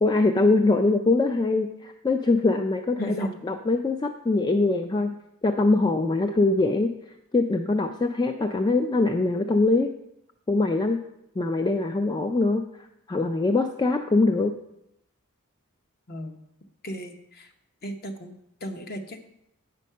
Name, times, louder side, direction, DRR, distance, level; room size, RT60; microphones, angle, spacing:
voice 1, 0.0-3.2 3.4-6.9 7.3-9.9 10.5-11.0 11.4-12.7 13.1-14.5, left 3 dB, 20° left, 6 dB, 0.3 m, -23 dB
voice 2, 3.0-3.4 16.1-16.4 16.8-17.5 17.8-19.2, equal, 45° left, 6 dB, 0.9 m, -35 dB
8.3 x 5.3 x 5.5 m, 0.82 s
head